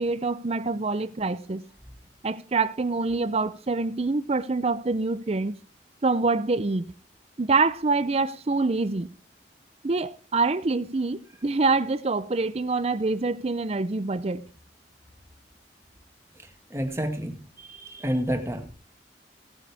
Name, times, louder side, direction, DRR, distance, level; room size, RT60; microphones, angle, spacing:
voice 1, 0.0-1.6 2.2-5.6 6.0-6.9 7.4-9.1 9.8-14.5, right 3 dB, 35° right, 0.5 m, -25 dB
voice 2, 16.3-18.7, equal, 15° right, 1.9 m, -30 dB
17.0 x 9.3 x 3.5 m
head